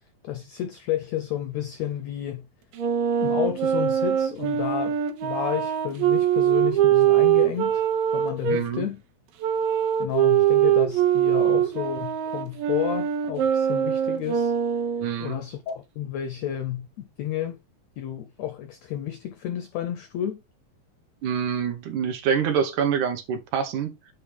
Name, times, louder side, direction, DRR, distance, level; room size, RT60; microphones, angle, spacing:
voice 1, 0.2-2.5 3.2-7.8 8.1-9.0 10.0-14.5 15.2-17.6 18.0-20.4, left 11 dB, 85° left, 1.5 m, -31 dB
Wind instrument woodwind instrument, 2.7-8.6 9.4-15.2, right 10 dB, 90° right, 2.8 m, -22 dB
voice 2, 8.4-8.9 15.0-15.4 21.2-23.9, right 7 dB, 70° right, 2.2 m, -26 dB
8.8 x 3.0 x 4.9 m
omnidirectional pair, 3.9 m